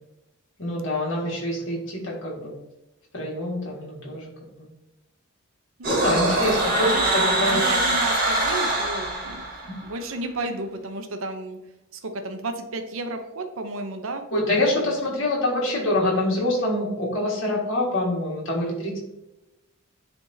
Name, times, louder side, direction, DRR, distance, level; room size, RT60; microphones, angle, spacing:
voice 1, 0.6-2.6 3.1-4.3 4.6-4.7 5.8-7.6 9.6-9.7 14.3-19.0, left 1 dB, 60° left, -3 dB, 1.9 m, -25 dB
sound 1, 5.8-9.8, right 2 dB, 40° right, 1.5 m, -23 dB
voice 2, 5.8-9.4 9.8-11.6 11.9-14.2 14.8-14.9, right 2 dB, 70° right, 7 dB, 0.7 m, -33 dB
10.0 x 3.5 x 2.8 m, 0.95 s
head